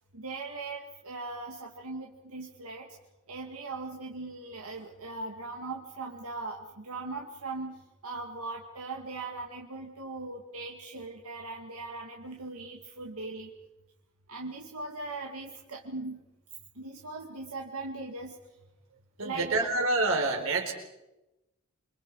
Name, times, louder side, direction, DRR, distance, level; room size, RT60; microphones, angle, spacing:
voice 1, 0.1-2.9 3.3-13.5 14.3-16.2 16.7-18.4 19.2-19.7, right 3 dB, 90° right, 0 dB, 2.3 m, -39 dB
voice 2, 19.2-20.7, right 2 dB, 65° right, 1 dB, 4.5 m, -27 dB
28.5 x 25.0 x 4.8 m, 0.98 s
head